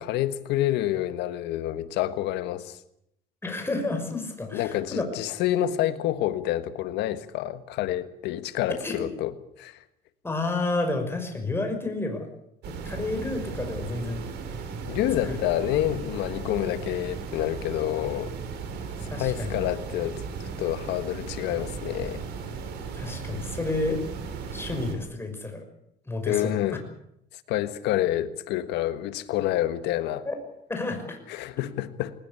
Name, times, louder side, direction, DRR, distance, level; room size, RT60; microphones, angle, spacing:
voice 1, 0.0-2.8 4.5-9.8 14.8-18.3 19.0-22.2 26.3-26.8 27.5-30.2 31.3-32.1, left 13 dB, 90° left, 11 dB, 1.6 m, -28 dB
voice 2, 3.4-5.1 8.8-8.9 10.2-12.3 12.7-14.2 14.6-14.7 15.2-15.4 19.1-19.7 22.9-24.0 24.5-25.6 26.1-26.6 30.3-30.4 30.7-31.2, left 2 dB, 15° left, 4 dB, 5.9 m, -30 dB
sound 1, 12.6-25.0, right 5 dB, 80° right, 4.9 m, -36 dB
20.0 x 20.0 x 8.3 m, 0.76 s
cardioid pair, 110°, 17 cm